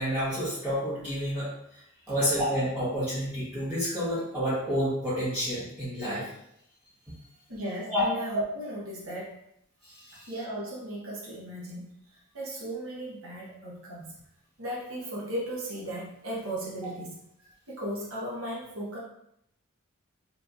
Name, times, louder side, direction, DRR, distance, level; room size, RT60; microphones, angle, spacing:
voice 1, 0.0-1.8 2.1-6.2 7.9-8.0 9.8-10.2, equal, 10° right, -14 dB, 1.5 m, -29 dB
voice 2, 7.5-9.4 10.2-11.9 12.3-14.1 14.6-19.0, right 1 dB, 75° right, -6 dB, 1.5 m, -36 dB
4.5 x 3.2 x 2.6 m, 0.76 s
head